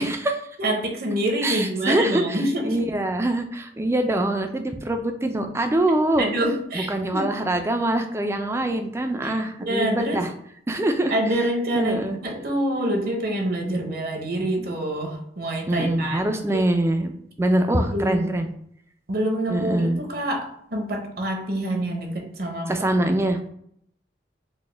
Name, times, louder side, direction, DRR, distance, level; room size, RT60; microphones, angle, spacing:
voice 1, 0.0-0.4 1.4-6.3 6.7-10.3 10.7-11.1 11.7-12.2 15.7-17.1 17.4-18.5 19.5-20.0 22.7-23.4, right 1 dB, 15° right, 6 dB, 0.3 m, -24 dB
voice 2, 0.6-2.8 6.2-7.3 9.2-10.2 11.1-16.6 17.9-18.3 19.1-22.9, right 1 dB, 60° right, 2 dB, 0.8 m, -26 dB
4.1 x 2.2 x 3.3 m, 0.68 s
head